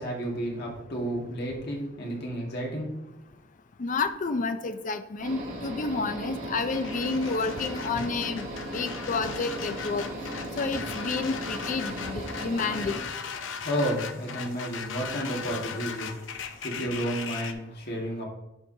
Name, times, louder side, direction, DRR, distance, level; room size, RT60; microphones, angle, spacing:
voice 1, 0.0-2.9 13.6-16.1 16.6-18.3, right 1 dB, 60° left, -1 dB, 1.8 m, -31 dB
voice 2, 3.8-13.0, left 4 dB, 45° left, 10 dB, 0.5 m, -30 dB
sound 1, 5.2-13.0, right 1 dB, 45° right, 2.4 m, -37 dB
sound 2, 6.5-17.5, left 6 dB, 85° left, 0.6 m, -38 dB
11.0 x 4.7 x 2.7 m, 0.94 s
head